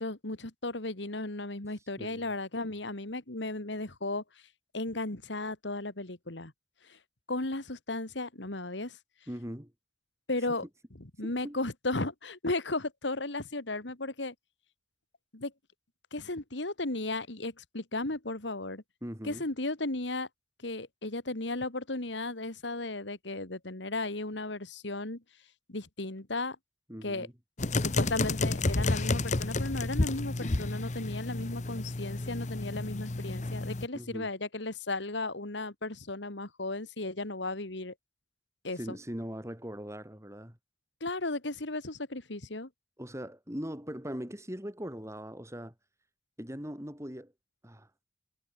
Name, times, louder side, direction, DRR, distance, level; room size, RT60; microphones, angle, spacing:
voice 1, 0.0-4.2 4.7-6.5 6.8-7.0 7.3-9.0 10.3-10.6 11.0-14.3 15.3-15.5 16.1-18.8 19.2-20.3 20.6-25.2 25.7-26.6 27.0-27.3 27.8-37.9 38.6-39.0 41.0-42.7, left 2 dB, 70° left, 2.4 m, -35 dB
voice 2, 2.0-2.3 9.3-9.7 10.5-10.6 11.2-11.6 19.0-19.4 26.9-27.3 33.9-34.3 38.7-40.6 43.0-45.7 46.4-47.3 47.6-47.9, equal, 15° right, 4.4 m, -40 dB
sound 1, 27.6-33.9, left 2 dB, 40° left, 0.9 m, -31 dB
head